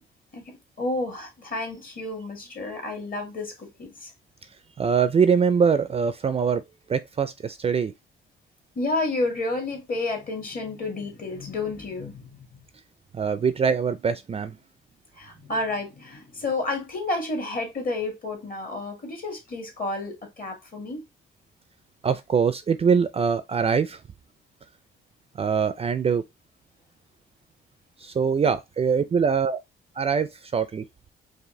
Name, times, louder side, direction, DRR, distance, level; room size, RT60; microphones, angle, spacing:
voice 1, 0.3-4.1 8.8-12.6 15.1-21.0 28.4-28.5, left 2 dB, 45° left, 1.8 m, -31 dB
voice 2, 4.8-6.6 6.9-7.9 13.1-14.6 22.0-24.0 25.4-26.2 28.0-29.6 30.0-30.8, right 6 dB, 30° right, 0.4 m, -23 dB
4.7 x 2.5 x 3.1 m
cardioid pair, 90°, 20 cm